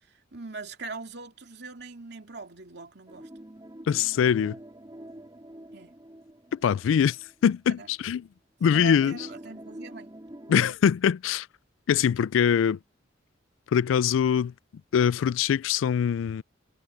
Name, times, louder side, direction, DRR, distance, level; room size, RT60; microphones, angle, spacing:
voice 1, 0.3-3.3 5.7-6.0 6.8-6.9 7.8-7.9 8.7-10.1, right 3 dB, 60° right, 2.9 m, -41 dB
sound 1, 3.1-7.4 7.8-7.9 8.6-10.7, right 1 dB, 20° right, 2.6 m, -46 dB
voice 2, 3.9-4.5 6.5-7.2 7.4-8.3 8.6-9.2 10.5-11.5 11.9-12.8 13.7-14.5 14.9-16.4, left 8 dB, 90° left, 0.3 m, -23 dB
head